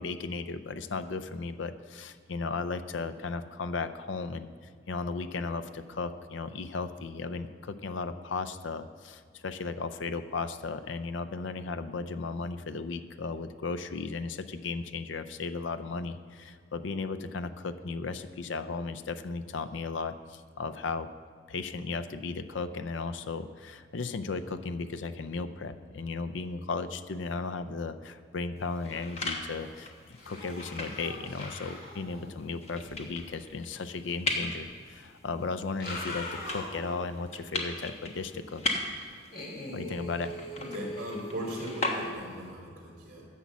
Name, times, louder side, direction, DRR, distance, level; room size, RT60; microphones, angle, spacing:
voice 1, 0.0-4.5 4.9-21.1 21.5-38.6 39.7-40.3, left 4 dB, 85° left, 12 dB, 0.5 m, -35 dB
sound 1, 28.6-42.5, left 2 dB, 35° left, 1.1 m, -39 dB
sound 2, 29.4-29.8 30.1-33.0 34.4-34.5 35.6-37.0 37.5-37.6 39.3-42.1, left 1 dB, 50° left, 2.2 m, -42 dB
voice 2, 40.7-43.3, right 1 dB, 45° right, -3 dB, 3.0 m, -38 dB
10.5 x 7.3 x 7.0 m, 2.1 s
head